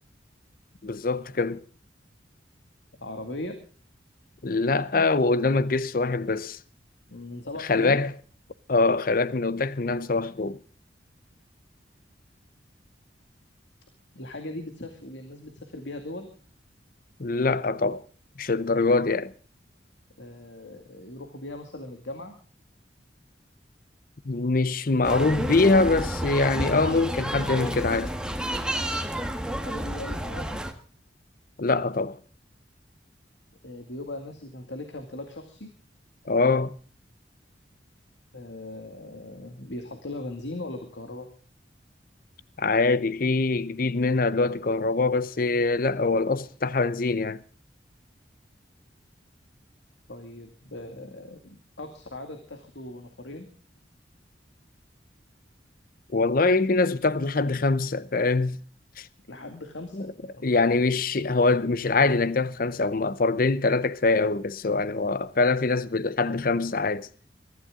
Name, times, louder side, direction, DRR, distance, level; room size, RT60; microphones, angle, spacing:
voice 1, 0.8-1.6 4.4-6.6 7.6-8.1 8.7-10.6 17.2-18.0 18.4-19.3 24.2-28.1 31.6-32.2 36.3-36.8 42.6-47.4 56.1-58.6 59.0-59.1 59.9-60.1 60.4-67.1, left 3 dB, 55° left, 0.7 m, -24 dB
voice 2, 3.0-3.6 7.1-8.0 14.1-16.3 20.2-22.4 29.5-30.6 33.6-35.7 38.3-41.3 50.1-53.5 59.3-60.5, left 2 dB, 90° left, 2.2 m, -39 dB
sound 1, 25.0-30.7, right 1 dB, 5° right, 1.5 m, -30 dB
22.5 x 14.0 x 3.7 m
head